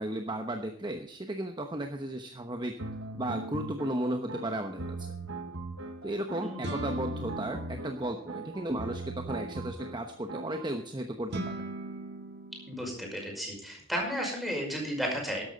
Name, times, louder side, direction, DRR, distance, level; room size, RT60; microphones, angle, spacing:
voice 1, 0.0-2.8 3.1-5.1 6.0-11.6, right 1 dB, 20° right, 5 dB, 1.0 m, -34 dB
sound 1, 2.8-10.7, right 2 dB, 85° right, 1.5 m, -39 dB
sound 2, 6.6-8.6 11.3-13.5, right 2 dB, 60° right, 1.7 m, -40 dB
voice 2, 12.7-15.4, equal, ahead, -1 dB, 5.5 m, -33 dB
13.5 x 11.5 x 4.1 m, 0.64 s
head